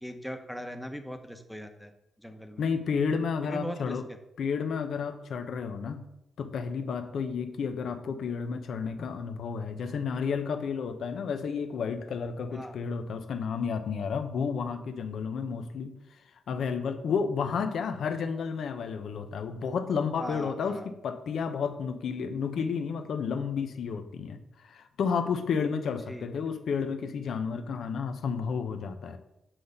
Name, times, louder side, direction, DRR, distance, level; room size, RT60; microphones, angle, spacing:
voice 1, 0.0-1.9 2.2-2.6 3.4-4.0 12.5-12.7 20.2-20.9 26.1-26.3, equal, 5° left, 5 dB, 1.0 m, -39 dB
voice 2, 2.6-4.1 4.4-6.0 6.4-15.9 16.5-29.2, left 6 dB, 70° left, 8 dB, 0.9 m, -31 dB
7.7 x 4.1 x 6.5 m, 0.86 s
cardioid pair, 95°, 0 cm